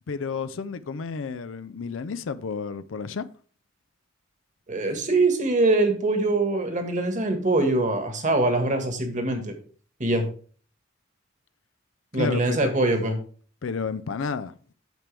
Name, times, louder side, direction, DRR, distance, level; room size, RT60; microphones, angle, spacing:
voice 1, 0.1-3.3 12.1-12.7 13.6-14.5, left 5 dB, 90° left, 0.5 m, -31 dB
voice 2, 4.7-9.5 10.0-10.2 12.1-13.2, right 2 dB, 40° right, 1.6 m, -23 dB
9.0 x 6.8 x 3.4 m
head